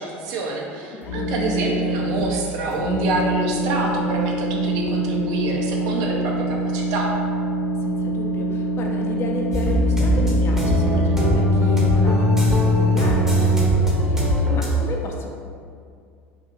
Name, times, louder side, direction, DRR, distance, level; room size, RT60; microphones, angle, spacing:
voice 1, 0.0-7.1, right 2 dB, 55° right, -1 dB, 0.5 m, -26 dB
voice 2, 0.8-1.4 7.8-15.3, left 3 dB, 35° left, 1 dB, 0.4 m, -32 dB
sound 1, 1.0-2.2 2.7-13.5, right 2 dB, 75° left, 0.8 m, -25 dB
sound 2, 9.5-14.7, left 1 dB, 5° right, 0.7 m, -19 dB
2.7 x 2.6 x 2.6 m, 2.3 s
figure-of-eight pair, 75°, 7 cm